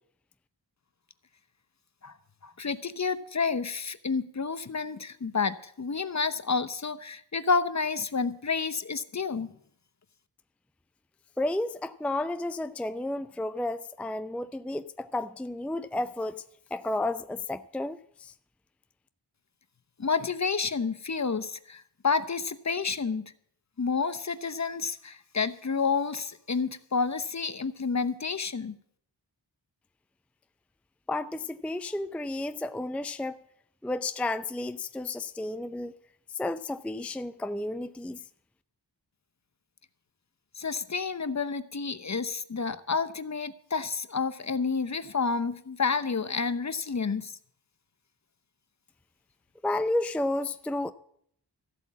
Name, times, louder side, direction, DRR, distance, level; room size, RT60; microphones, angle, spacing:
voice 1, 2.4-9.5 20.0-23.3 23.8-28.8 40.6-47.3, left 5 dB, 40° left, 0.8 m, -30 dB
voice 2, 11.4-16.4 16.7-18.3 31.1-33.4 33.8-36.0 36.3-38.2 49.6-50.9, left 2 dB, 5° left, 0.5 m, -32 dB
14.5 x 8.1 x 7.3 m
cardioid pair, 50°, 44 cm